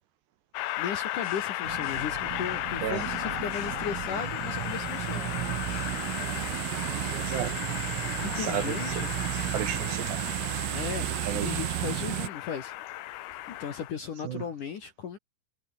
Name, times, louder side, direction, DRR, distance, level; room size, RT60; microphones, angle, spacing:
Train, 0.5-13.9, left 16 dB, 75° left, 3.5 m, -35 dB
voice 1, 0.8-5.3 8.2-9.1 10.7-11.1 11.3-12.7 13.5-15.2, left 7 dB, 55° left, 2.6 m, -36 dB
sound 1, 1.0-11.4, left 7 dB, 90° left, 7.7 m, -52 dB
sound 2, 1.6-12.3, right 19 dB, 85° right, 3.6 m, -33 dB
voice 2, 7.2-7.6 8.2-9.1 9.5-10.3 11.3-11.5 14.2-14.4, right 10 dB, 65° right, 3.3 m, -33 dB
omnidirectional pair, 6.0 m